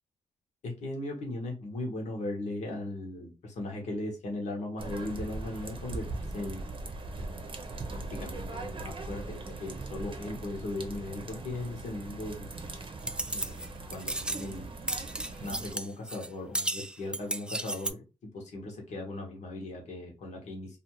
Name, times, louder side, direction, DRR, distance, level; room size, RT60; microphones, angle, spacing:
voice 1, 0.6-6.1 6.3-6.6 7.2-12.5 13.3-14.7 15.4-20.8, left 2 dB, 70° left, 0 dB, 1.0 m, -38 dB
sound 1, 4.8-15.7, right 3 dB, 45° right, 0.7 m, -40 dB
sound 2, 13.0-13.7 13.9-14.5 14.9-16.3 16.5-17.9, right 1 dB, 5° right, 0.3 m, -34 dB
2.5 x 2.4 x 2.9 m, 0.27 s
supercardioid pair, 50°, 12 cm